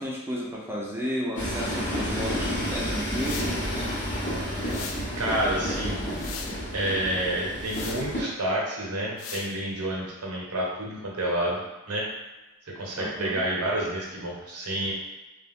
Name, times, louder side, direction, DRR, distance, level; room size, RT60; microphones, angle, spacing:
voice 1, 0.0-3.4 13.0-13.4, equal, 10° right, -4 dB, 0.4 m, -33 dB
Train, 1.4-8.2, equal, 35° left, 0.7 m, -30 dB
sound 1, 3.1-3.6 4.6-5.1 5.8-6.6 7.6-8.1 9.2-9.5, left 6 dB, 60° left, 0.3 m, -39 dB
voice 2, 5.2-6.0 6.7-12.1 12.8-14.9, right 1 dB, 75° right, -3 dB, 0.8 m, -29 dB
2.4 x 2.2 x 3.4 m, 1.1 s
head